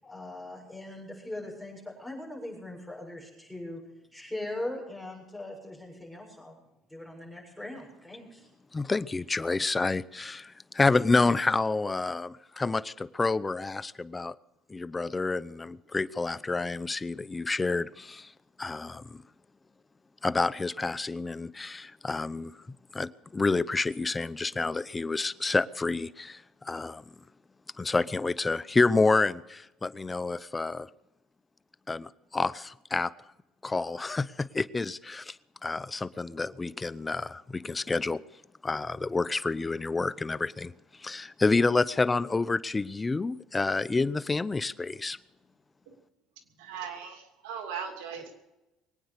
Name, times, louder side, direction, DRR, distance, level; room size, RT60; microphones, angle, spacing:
voice 1, 0.0-3.8 4.1-6.6 6.9-8.5, left 1 dB, 5° left, -3 dB, 7.4 m, -40 dB
voice 2, 8.7-14.3 14.7-18.3 18.6-19.2 20.2-22.5 22.9-27.0 27.8-30.9 31.9-33.1 33.6-35.4 35.6-38.2 38.6-40.7 41.0-45.2, left 3 dB, 20° left, 18 dB, 0.6 m, -29 dB
voice 3, 46.6-48.3, right 7 dB, 85° right, 4 dB, 2.9 m, -38 dB
23.0 x 9.3 x 6.7 m, 0.96 s
supercardioid pair, 85°, 0 cm